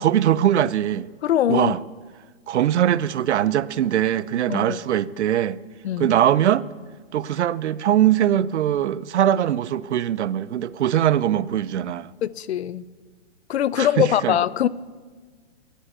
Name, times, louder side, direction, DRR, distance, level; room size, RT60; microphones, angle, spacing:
voice 1, 0.0-1.1 1.5-1.8 2.5-5.6 6.0-6.7 7.1-12.1 13.8-14.4, right 11 dB, 80° right, 0.5 m, -21 dB
voice 2, 1.2-1.7 4.5-4.8 5.8-6.2 12.2-12.9 13.5-14.7, left 11 dB, 70° left, 0.5 m, -22 dB
9.9 x 8.1 x 7.8 m
hypercardioid pair, 150°, 34 cm